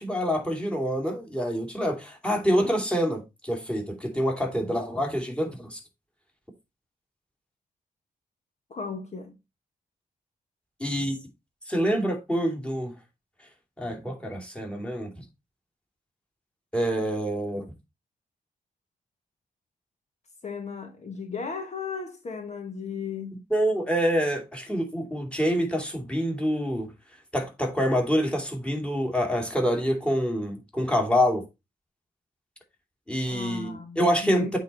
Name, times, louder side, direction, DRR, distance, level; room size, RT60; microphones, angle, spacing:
voice 1, 0.0-5.8 10.8-11.2 11.7-12.9 13.8-15.1 16.7-17.7 23.5-26.9 27.3-31.4 33.1-34.6, equal, 5° left, 2.7 m, -26 dB
voice 2, 8.7-9.4 20.4-23.4 33.3-34.5, left 5 dB, 50° left, 1.4 m, -35 dB
8.6 x 4.1 x 4.4 m
cardioid pair, 85°, 15 cm